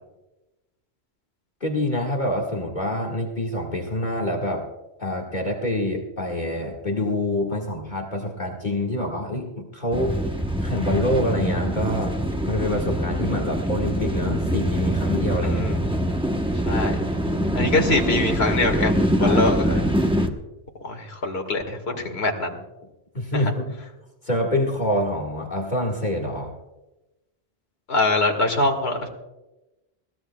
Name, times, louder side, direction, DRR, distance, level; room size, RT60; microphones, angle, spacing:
voice 1, 1.6-4.7 5.0-10.2 10.6-12.2 12.5-15.6 19.2-19.9 21.9-22.0 23.1-23.8 24.2-26.5, left 1 dB, 45° left, 0 dB, 1.9 m, -26 dB
sound 1, 9.9-20.3, equal, 5° right, 0.8 m, -24 dB
voice 2, 15.4-15.8 16.7-17.1 17.5-19.7 20.8-22.6 27.9-29.1, left 2 dB, 70° left, 3 dB, 2.0 m, -23 dB
22.0 x 17.0 x 2.3 m, 1.0 s
omnidirectional pair, 1.1 m